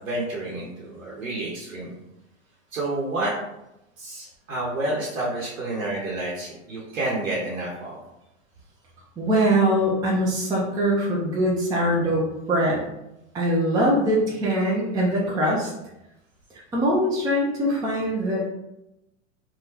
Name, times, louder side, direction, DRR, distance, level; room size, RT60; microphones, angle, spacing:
voice 1, 0.0-1.9 2.7-3.3 4.0-8.0, right 2 dB, 90° right, -4 dB, 1.0 m, -29 dB
voice 2, 9.2-12.8 13.3-15.7 16.7-18.5, equal, 10° right, -4 dB, 0.4 m, -22 dB
3.7 x 2.3 x 2.8 m, 0.89 s
hypercardioid pair, 110°, 39 cm